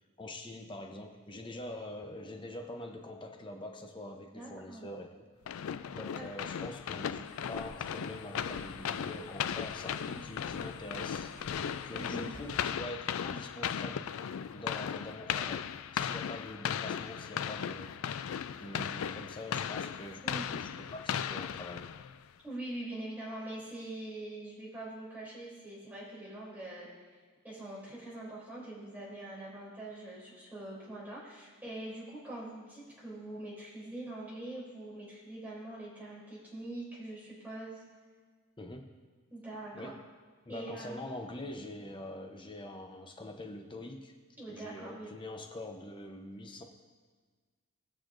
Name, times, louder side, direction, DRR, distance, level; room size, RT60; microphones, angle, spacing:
voice 1, 0.2-5.3 5.9-14.1 14.5-17.9 18.2-20.3 20.6-21.9 38.6-38.9 39.7-40.0 40.5-44.1 44.5-46.6, left 1 dB, 20° left, 4 dB, 0.7 m, -44 dB
voice 2, 4.3-4.8 6.1-6.2 10.1-10.2 11.9-12.3 20.2-20.5 22.4-26.9 27.4-37.8 39.3-39.9 40.5-41.0 44.4-45.1, right 1 dB, 10° right, -8 dB, 3.2 m, -43 dB
sound 1, 5.5-22.2, left 8 dB, 70° left, 0.3 m, -37 dB
sound 2, 7.2-12.7, right 1 dB, 40° right, 2.0 m, -55 dB
18.5 x 6.5 x 2.6 m, 1.5 s
head